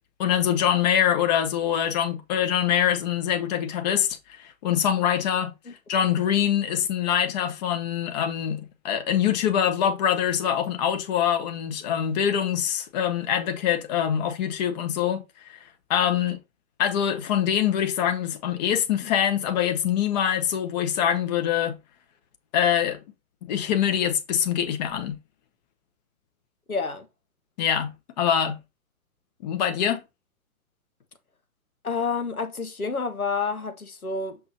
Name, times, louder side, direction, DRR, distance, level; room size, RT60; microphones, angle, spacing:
voice 1, 0.2-5.5 5.9-15.2 15.5-15.6 15.9-16.4 16.8-21.8 22.5-23.0 23.4-25.2 27.6-28.6 29.4-30.0, left 9 dB, 30° left, 1.0 m, -24 dB
voice 2, 26.7-27.1 31.8-34.4, left 4 dB, 90° left, 1.3 m, -29 dB
6.1 x 5.9 x 2.7 m
figure-of-eight pair, 125°, 42 cm